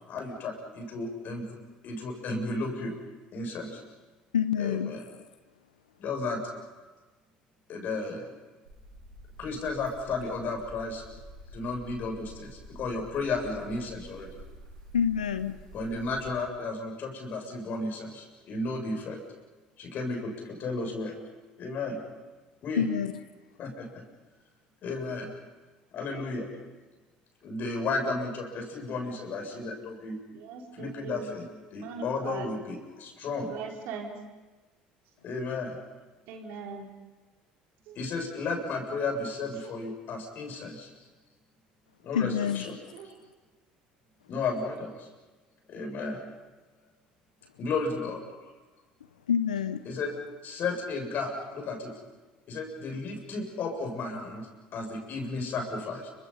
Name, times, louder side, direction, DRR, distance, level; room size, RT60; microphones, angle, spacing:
voice 1, 0.1-1.6 1.8-3.0 3.3-3.8 4.6-5.0 6.0-6.4 6.8-6.9 7.7-8.2 9.4-11.0 11.5-14.3 15.7-19.2 19.8-21.2 21.6-22.3 22.6-22.9 23.6-24.0 24.8-25.3 25.9-26.5 27.4-30.2 30.7-31.5 31.7-33.5 35.2-35.8 38.0-40.9 42.0-42.8 44.3-45.1 45.7-46.2 47.6-48.5 49.9-50.1 50.4-51.9 52.5-56.1, left 3 dB, 50° left, 7.1 m, -33 dB
voice 2, 4.3-5.0 14.9-15.5 22.8-23.1 42.1-42.7 49.3-49.8, left 8 dB, 90° left, 0.7 m, -27 dB
sound 1, 8.6-16.3, right 1 dB, 85° right, 6.9 m, -49 dB
voice 3, 30.3-31.4 31.8-32.5 33.4-34.1 36.3-36.9 37.9-38.0 39.6-39.7 42.9-43.2, right 5 dB, 65° right, 4.5 m, -40 dB
29.5 x 25.5 x 5.7 m
hypercardioid pair, 65°, 4 cm